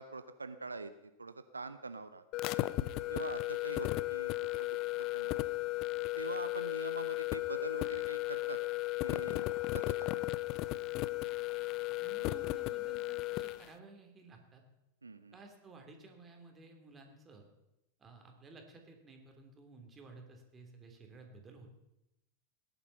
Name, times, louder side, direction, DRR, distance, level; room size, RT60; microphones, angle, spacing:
voice 1, 0.0-2.2 3.0-4.8 5.1-5.4 6.2-8.6 9.0-9.5 9.7-10.3 15.0-15.4, right 3 dB, 80° right, 11 dB, 0.6 m, -44 dB
sound 1, 2.3-13.7, left 18 dB, 40° left, 0.6 m, -35 dB
voice 2, 12.0-14.6 15.3-17.5 18.0-21.7, right 3 dB, 20° right, 3 dB, 3.0 m, -55 dB
17.5 x 11.0 x 5.7 m, 0.92 s
figure-of-eight pair, 90°, 0 cm